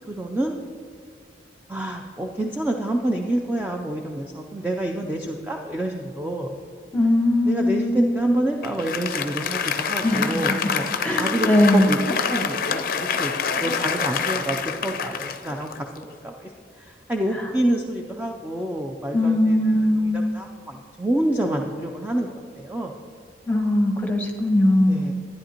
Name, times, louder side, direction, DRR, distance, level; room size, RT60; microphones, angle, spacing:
voice 1, 0.1-0.6 1.7-6.6 7.5-10.9 11.1-14.6 14.8-23.0 24.8-25.1, right 1 dB, 10° right, 2 dB, 0.4 m, -28 dB
voice 2, 6.9-8.2 10.0-10.4 11.0-11.9 19.1-20.3 23.5-25.1, left 1 dB, 10° left, 2 dB, 1.0 m, -20 dB
Applause, 8.6-16.2, left 6 dB, 50° left, 0.5 m, -26 dB
11.5 x 10.0 x 2.9 m, 2.3 s
head